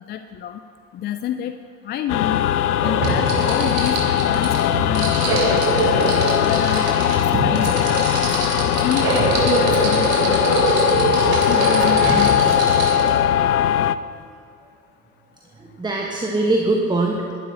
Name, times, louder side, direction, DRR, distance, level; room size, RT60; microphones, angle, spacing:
voice 1, 0.1-0.6 0.9-1.5 1.8-2.4 2.8-6.9 7.4-8.3 8.8-10.8 11.2-12.5, left 10 dB, 25° left, 9 dB, 0.4 m, -28 dB
sound 1, 2.1-14.0, left 11 dB, 75° left, 0.5 m, -20 dB
sound 2, 2.8-13.1, right 3 dB, 50° right, 3.5 m, -23 dB
voice 2, 13.4-13.8 14.1-14.2 15.6-17.3, right 2 dB, 10° right, 0 dB, 1.2 m, -23 dB
22.0 x 11.5 x 2.8 m, 2.4 s
figure-of-eight pair, 65°, 46 cm